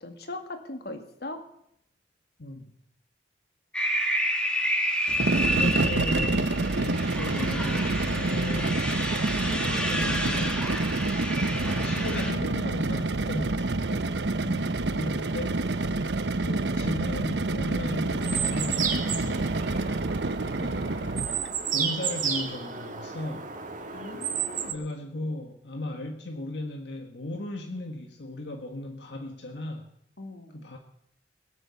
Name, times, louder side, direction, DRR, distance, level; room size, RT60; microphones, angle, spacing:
voice 1, 0.0-1.4 14.4-15.0 23.9-24.8 30.2-30.7, left 2 dB, 65° left, 6 dB, 2.0 m, -40 dB
voice 2, 2.4-2.7 5.5-8.9 9.4-10.7 11.4-14.1 14.9-15.7 16.4-19.6 20.6-21.2 21.7-23.5 24.7-29.9 30.5-30.8, left 2 dB, 80° left, 4 dB, 1.5 m, -37 dB
sound 1, 3.7-12.3, equal, 5° left, 2.0 m, -30 dB
sound 2, 5.1-21.5, right 2 dB, 80° right, 0.9 m, -28 dB
sound 3, 18.2-24.7, right 7 dB, 45° right, 2.1 m, -32 dB
21.5 x 8.8 x 7.1 m, 0.72 s
head